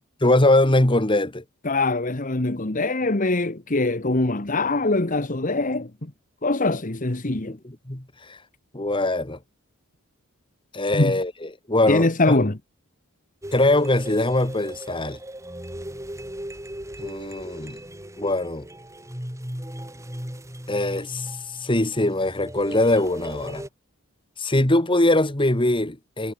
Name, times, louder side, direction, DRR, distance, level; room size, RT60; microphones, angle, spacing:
voice 1, 0.2-1.4 7.3-7.6 7.9-8.4 8.7-9.4 10.7-11.3 11.7-12.3 13.5-15.2 17.0-17.8 18.2-18.7 20.7-23.6 24.4-26.3, left 1 dB, 25° left, 2.0 m, -22 dB
voice 2, 1.6-6.1 6.4-7.6 10.9-11.2 11.9-12.6, left 2 dB, 40° left, 1.4 m, -23 dB
sound 1, 13.4-23.7, right 1 dB, 15° right, 4.1 m, -37 dB
head